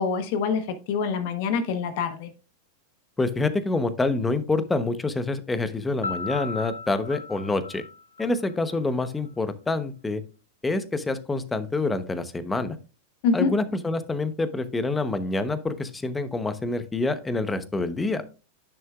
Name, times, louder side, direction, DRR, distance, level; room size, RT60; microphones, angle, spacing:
voice 1, 0.0-2.3 13.2-13.5, left 5 dB, 60° left, 1.1 m, -25 dB
voice 2, 3.2-7.8 8.2-10.2 10.6-12.8 13.3-18.2, left 3 dB, 15° left, 1.0 m, -27 dB
Piano, 6.0-8.8, left 4 dB, 90° left, 1.0 m, -36 dB
10.5 x 6.5 x 2.4 m
hypercardioid pair, 100°, 0 cm